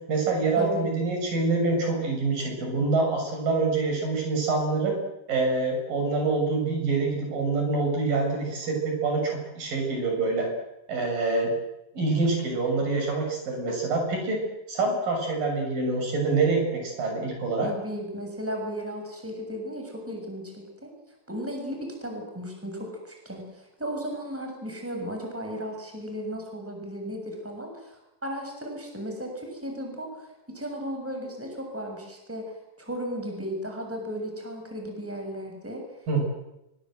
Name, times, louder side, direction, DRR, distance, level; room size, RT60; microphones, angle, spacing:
voice 1, 0.0-4.9 5.3-10.5 10.9-11.5 11.9-14.4 14.7-17.7 36.1-36.2, right 3 dB, 75° right, 2 dB, 8.6 m, -26 dB
voice 2, 0.6-0.9 17.6-20.9 21.3-28.0 28.2-30.3 30.5-32.4 32.8-35.8, equal, 5° right, 2 dB, 6.6 m, -35 dB
25.0 x 24.0 x 7.9 m, 0.93 s
omnidirectional pair, 4.0 m